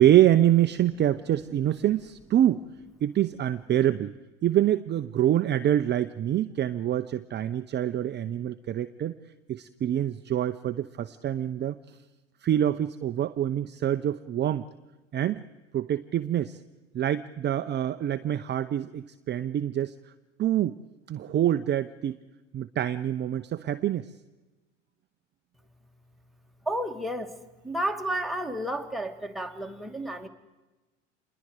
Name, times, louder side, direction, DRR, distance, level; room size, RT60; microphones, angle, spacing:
voice 1, 0.0-2.6 3.0-4.1 4.4-9.2 9.5-11.8 12.4-14.7 15.1-15.4 15.7-16.6 16.9-19.9 20.4-20.8 21.1-22.2 22.5-24.1, right 11 dB, 30° right, 10 dB, 0.8 m, -25 dB
voice 2, 26.7-27.4 27.6-30.3, right 1 dB, ahead, 3 dB, 2.2 m, -31 dB
28.0 x 21.5 x 5.0 m, 1.1 s
hypercardioid pair, 80°, 37 cm